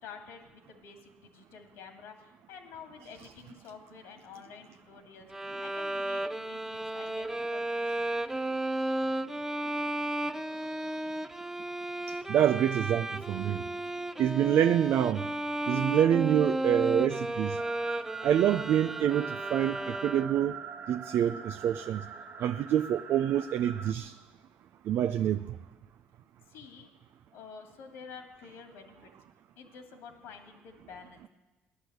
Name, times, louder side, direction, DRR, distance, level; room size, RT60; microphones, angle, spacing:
voice 1, 0.0-5.3 5.6-8.2 26.5-26.9 27.3-29.1 29.6-31.3, left 6 dB, 80° left, 4 dB, 2.4 m, -49 dB
Bowed string instrument, 5.3-20.6, right 1 dB, 10° right, 0.7 m, -34 dB
voice 2, 12.3-13.6 14.2-15.3 15.7-17.6 18.2-20.6 20.9-22.0 22.4-24.1 24.9-25.4, right 10 dB, 65° right, 10 dB, 0.5 m, -26 dB
sound 1, 17.6-23.9, right 6 dB, 50° right, 1.3 m, -42 dB
17.0 x 11.0 x 8.0 m, 1.1 s
supercardioid pair, 85°, 4 cm